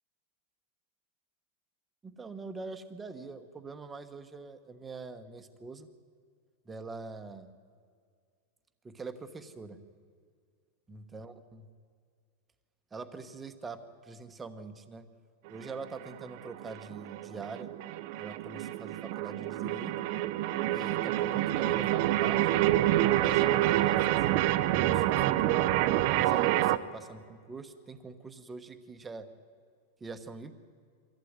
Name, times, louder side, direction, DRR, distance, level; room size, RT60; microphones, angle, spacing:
voice 1, 2.0-5.9 6.6-7.5 8.8-9.8 10.9-11.7 12.9-15.0 15.5-17.7 18.2-20.0 20.7-22.5 23.2-25.7 26.2-29.3 30.0-30.5, right 4 dB, 10° right, 9 dB, 1.2 m, -44 dB
sound 1, 15.5-26.8, right 14 dB, 45° right, 0.7 m, -27 dB
24.0 x 15.0 x 9.5 m, 2.1 s
supercardioid pair, 165°, 0 cm